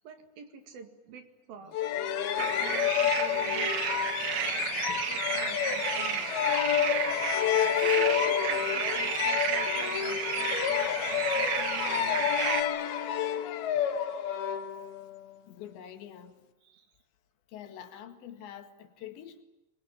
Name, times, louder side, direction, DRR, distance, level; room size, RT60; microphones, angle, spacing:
voice 1, 0.0-4.2 5.0-6.4 7.7-12.3 14.1-14.4 16.6-16.9 19.0-19.3, right 6 dB, 60° right, 7 dB, 3.6 m, -47 dB
sound 1, 1.7-15.2, left 10 dB, 65° left, 3.1 m, -29 dB
sound 2, 2.4-12.6, right 11 dB, 85° right, 1.6 m, -32 dB
voice 2, 15.5-16.4 17.5-19.4, left 10 dB, 80° left, 7 dB, 4.1 m, -46 dB
25.0 x 21.5 x 9.3 m, 0.95 s
omnidirectional pair, 5.0 m